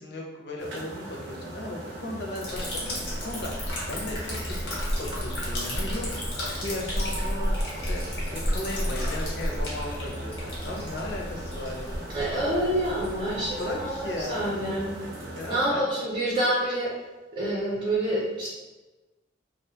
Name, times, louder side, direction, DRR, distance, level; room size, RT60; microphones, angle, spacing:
voice 1, 0.0-12.2 13.2-14.5 15.3-15.9, left 1 dB, 60° left, 0 dB, 0.5 m, -36 dB
sound 1, 0.6-15.7, right 1 dB, 80° right, 0.6 m, -40 dB
Liquid, 2.4-14.8, equal, 90° left, 0.9 m, -32 dB
voice 2, 12.1-14.9 15.5-16.9 17.3-18.5, right 1 dB, 25° right, -8 dB, 0.6 m, -27 dB
2.4 x 2.1 x 2.7 m, 1.1 s
head